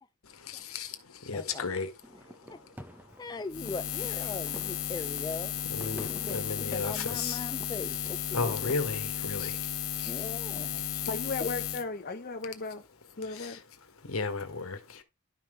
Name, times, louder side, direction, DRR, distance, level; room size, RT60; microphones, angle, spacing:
voice 1, 0.2-2.7 5.7-7.4 8.3-10.3 10.6-10.7 11.0-11.1 13.2-13.6 14.0-15.0, left 4 dB, 70° left, 1.5 m, -35 dB
voice 2, 1.3-1.6 2.5-2.6 3.2-8.7 10.0-10.8 11.4-11.5, left 3 dB, 20° left, 0.4 m, -40 dB
sound 1, 2.0-9.5, equal, 10° right, 0.8 m, -50 dB
Buzz, 3.5-11.8, left 10 dB, 90° left, 1.1 m, -34 dB
voice 3, 10.9-12.8 13.2-13.6, left 3 dB, 45° left, 0.8 m, -36 dB
11.5 x 5.8 x 3.2 m
head